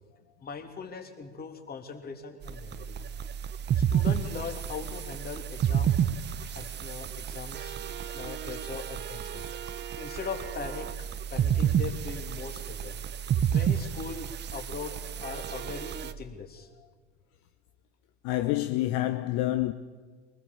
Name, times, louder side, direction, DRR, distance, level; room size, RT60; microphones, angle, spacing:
voice 1, 0.4-3.0 3.7-5.9 6.5-7.8 8.1-9.5 10.0-13.0 13.5-16.7, left 5 dB, 25° left, 3.3 m, -40 dB
sound 1, 2.4-16.1, right 9 dB, 30° right, 1.2 m, -31 dB
voice 2, 18.2-19.7, left 15 dB, 50° left, 1.2 m, -27 dB
24.0 x 20.5 x 7.3 m
hypercardioid pair, 90°, 36 cm